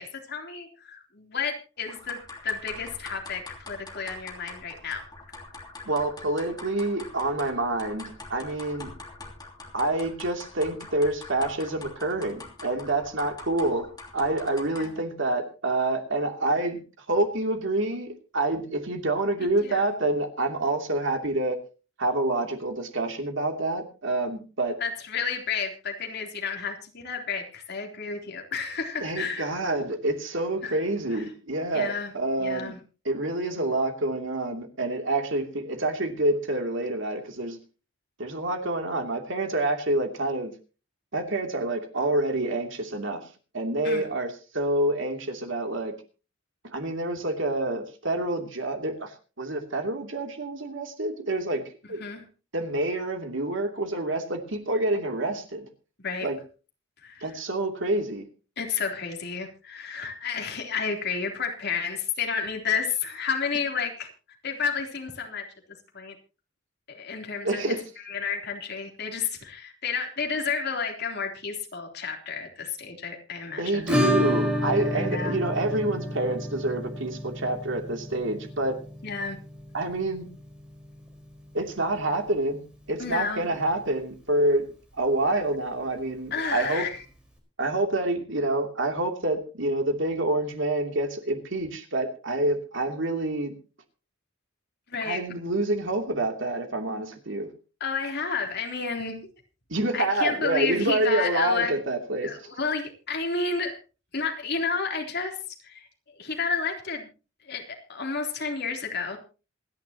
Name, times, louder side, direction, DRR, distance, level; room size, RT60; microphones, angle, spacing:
voice 1, 0.0-5.0 14.8-15.0 19.4-19.9 24.8-29.5 30.6-30.8 31.1-31.2 31.7-32.1 32.4-32.8 43.8-44.0 51.8-52.2 56.0-56.3 57.0-57.3 58.6-64.1 64.4-65.4 65.9-66.1 66.9-67.8 68.1-73.9 75.0-75.4 79.0-79.4 83.0-83.5 86.3-87.0 94.9-95.2 97.8-99.2 99.9-101.7 102.2-103.8 104.1-105.4 105.6-105.9 106.2-107.1 107.4-109.2, left 5 dB, 55° left, 2 dB, 3.4 m, -31 dB
sound 1, 1.9-15.1, left 3 dB, 20° left, 3.0 m, -44 dB
voice 2, 5.8-8.9 9.7-21.6 22.0-24.8 29.0-32.7 33.0-37.6 38.2-40.5 41.1-43.2 43.5-45.9 46.7-52.0 52.5-55.7 56.2-56.4 57.2-58.3 67.4-67.8 73.6-78.8 79.7-80.3 81.5-84.7 85.0-86.9 87.6-93.5 95.0-97.5 99.7-102.4, right 2 dB, 65° right, 4 dB, 2.8 m, -27 dB
Acoustic guitar / Strum, 73.9-82.5 82.7-82.8 83.1-83.2 83.6-83.7 85.7-85.8 87.0-87.1, equal, 5° right, 4.5 m, -30 dB
27.0 x 10.5 x 2.9 m, 0.35 s
head